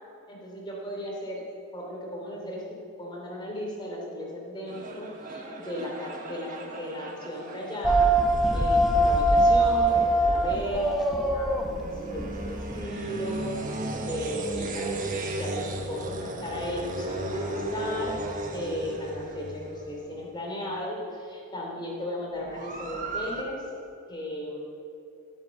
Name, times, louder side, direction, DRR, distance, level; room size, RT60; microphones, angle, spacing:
voice 1, 0.3-1.5 1.7-8.1 8.5-18.1 18.5-23.6 24.1-24.6, equal, 20° left, -2 dB, 2.9 m, -36 dB
sound 1, 4.7-20.3 22.4-23.4, right 1 dB, 35° right, 1.3 m, -36 dB
sound 2, 7.8-12.8, right 1 dB, ahead, 0.8 m, -23 dB
16.0 x 8.2 x 7.0 m, 2.8 s
head